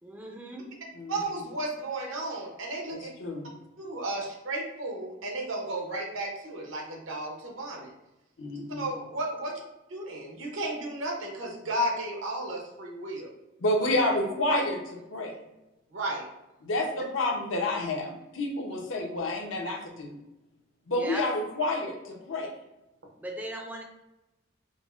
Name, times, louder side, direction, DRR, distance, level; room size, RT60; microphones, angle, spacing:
voice 1, 0.0-0.8 13.9-14.2 21.0-21.3 23.2-23.8, right 1 dB, 10° right, 2 dB, 0.3 m, -38 dB
voice 2, 1.1-3.1 3.8-7.9 8.8-9.6 9.9-13.3 15.9-16.2, right 1 dB, 80° right, 0 dB, 0.9 m, -33 dB
voice 3, 2.9-3.5 8.4-8.9 13.6-15.3 16.6-20.2 20.9-22.5, left 1 dB, 75° left, 1 dB, 0.7 m, -29 dB
5.1 x 2.0 x 2.4 m, 0.95 s
head